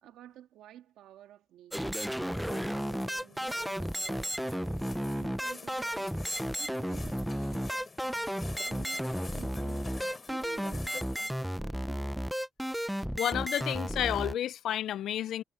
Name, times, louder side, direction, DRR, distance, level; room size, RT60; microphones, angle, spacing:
voice 1, 0.0-2.2 2.4-9.9 10.3-12.3, right 12 dB, 85° right, 1.9 m, -53 dB
sound 1, 1.7-14.4, equal, ahead, 0.7 m, -33 dB
sound 2, 2.3-11.4, left 4 dB, 30° left, 4.1 m, -48 dB
voice 2, 13.2-15.4, left 11 dB, 75° left, 0.5 m, -31 dB
cardioid pair, 90°, 0 cm